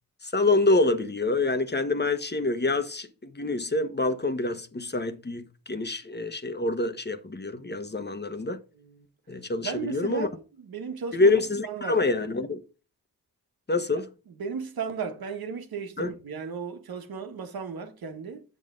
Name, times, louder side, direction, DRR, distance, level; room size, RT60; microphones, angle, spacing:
voice 1, 0.2-8.6 9.3-10.3 11.1-12.6 13.7-14.1 16.0-16.1, left 2 dB, 30° left, 1.2 m, -26 dB
voice 2, 9.6-10.3 10.6-11.3 11.6-12.0 14.4-18.4, right 6 dB, 85° right, 1.5 m, -35 dB
7.8 x 6.3 x 3.9 m
cardioid pair, 65°, 35 cm